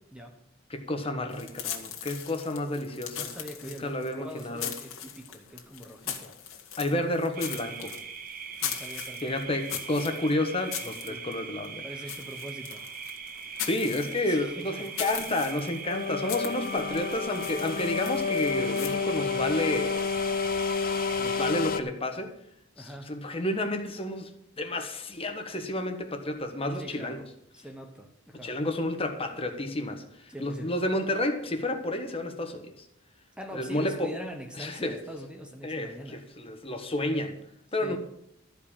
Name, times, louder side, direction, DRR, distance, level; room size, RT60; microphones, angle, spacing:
voice 1, 0.7-3.3 3.6-4.7 6.8-7.9 9.2-11.8 13.7-19.9 21.2-22.3 22.8-24.3 24.6-27.2 28.4-30.0 30.4-32.8 33.5-34.1 34.6-35.0 35.6-37.4 37.7-38.0, left 1 dB, 30° left, 5 dB, 1.2 m, -30 dB
sound 1, 1.3-18.9, left 9 dB, 85° left, 1.7 m, -40 dB
voice 2, 3.2-6.3 8.6-9.4 11.1-11.3 11.8-12.9 14.3-14.9 22.8-23.1 26.7-27.3 27.5-28.6 30.3-30.7 33.4-36.2 37.8-38.0, equal, 5° right, 4 dB, 1.0 m, -42 dB
sound 2, 7.3-21.5, right 6 dB, 45° right, 0.8 m, -41 dB
sound 3, 15.9-21.8, left 5 dB, 45° left, 0.6 m, -30 dB
13.0 x 5.1 x 8.7 m, 0.74 s
head